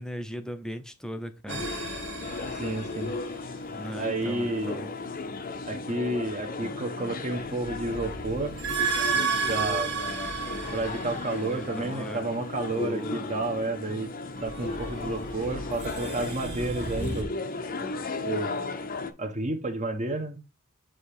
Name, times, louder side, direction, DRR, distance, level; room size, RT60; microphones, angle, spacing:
voice 1, 0.0-1.6 3.7-4.9 11.5-12.3 12.7-13.3, right 1 dB, 5° left, 0.6 m, -38 dB
sound 1, 1.5-19.1, left 3 dB, 45° left, 0.6 m, -35 dB
sound 2, 1.5-3.4 7.3-11.8 14.4-17.2, right 5 dB, 55° right, 1.2 m, -33 dB
voice 2, 2.6-3.1 3.9-4.8 5.6-8.5 9.5-9.9 10.7-14.1 14.4-17.3 18.2-18.6 19.2-20.4, right 2 dB, 35° right, 1.0 m, -31 dB
7.4 x 2.9 x 4.8 m
head